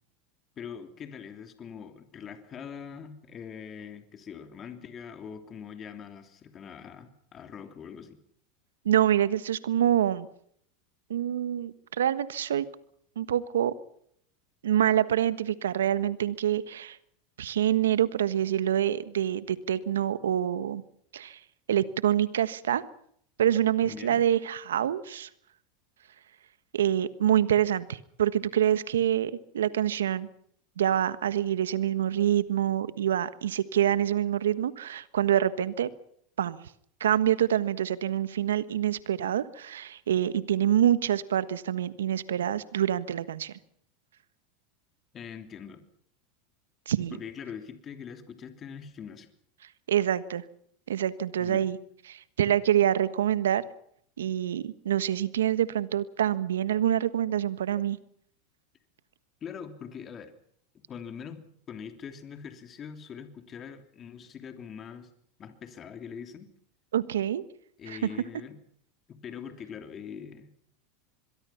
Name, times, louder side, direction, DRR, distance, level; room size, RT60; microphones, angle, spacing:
voice 1, 0.6-8.2 23.8-24.2 45.1-45.8 47.1-49.3 51.4-51.7 59.4-60.3 60.9-65.1 65.4-66.5 67.8-68.6 69.1-70.5, left 7 dB, 35° left, 8 dB, 3.1 m, -43 dB
voice 2, 8.8-10.3 11.1-12.7 13.2-13.7 14.6-17.0 17.4-20.8 21.1-21.4 21.7-22.8 23.4-25.3 26.7-30.3 30.8-35.9 36.4-36.6 37.0-43.5 46.9-47.2 49.9-50.4 50.9-51.8 52.1-53.6 54.2-58.0 66.9-67.4 67.9-68.0, right 10 dB, 85° right, 15 dB, 1.3 m, -26 dB
25.5 x 22.5 x 5.8 m, 0.67 s
hypercardioid pair, 100°, 0 cm